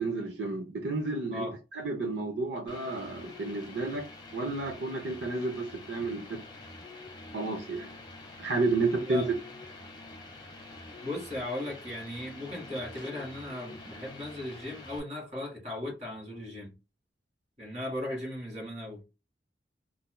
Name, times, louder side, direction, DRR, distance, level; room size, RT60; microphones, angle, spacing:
voice 1, 0.0-1.5 1.8-4.1 4.3-6.2 7.3-7.9 8.4-9.2, right 3 dB, 85° right, 0.7 m, -31 dB
sound 1, 2.7-15.0, left 2 dB, 25° left, 0.9 m, -47 dB
voice 2, 11.0-16.7 17.6-19.0, left 1 dB, 40° right, 2.0 m, -37 dB
4.1 x 2.7 x 2.2 m
head